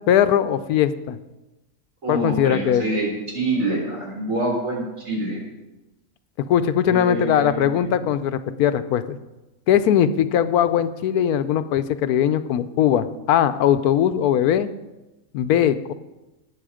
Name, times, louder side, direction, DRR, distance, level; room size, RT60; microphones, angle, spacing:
voice 1, 0.1-1.2 2.1-2.8 6.5-9.2 9.7-14.7 15.3-15.9, left 10 dB, 85° left, 12 dB, 1.1 m, -20 dB
voice 2, 2.0-3.1 3.3-5.4 6.8-7.9, right 2 dB, 55° right, -3 dB, 4.4 m, -26 dB
18.0 x 6.4 x 5.0 m, 1.0 s
omnidirectional pair, 1.6 m